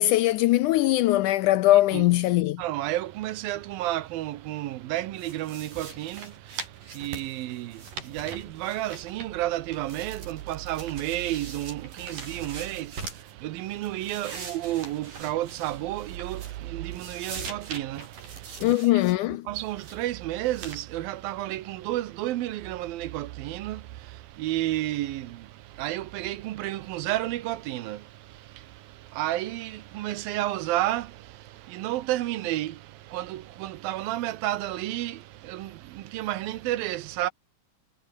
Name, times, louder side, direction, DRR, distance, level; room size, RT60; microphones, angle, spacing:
voice 1, 0.0-2.6 18.6-19.5, left 15 dB, 75° left, 1.9 m, -21 dB
voice 2, 2.6-19.0 19.5-37.3, right 15 dB, 90° right, 2.9 m, -32 dB
sound 1, 5.2-9.5 9.7-13.3 13.7-16.7 16.9-19.2 19.6-20.1 20.5-20.8, right 4 dB, 65° right, 8.5 m, -42 dB
omnidirectional pair, 4.0 m